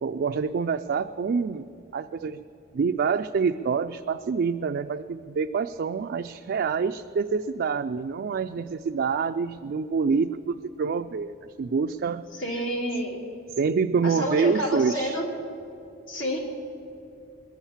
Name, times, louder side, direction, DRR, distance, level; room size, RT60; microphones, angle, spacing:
voice 1, 0.0-2.4 2.7-12.3 13.6-15.2, right 5 dB, 50° right, 6 dB, 0.3 m, -27 dB
voice 2, 12.4-13.2 14.0-15.2 16.1-16.4, equal, 70° left, 0 dB, 2.7 m, -28 dB
21.0 x 7.3 x 7.1 m, 2.7 s
head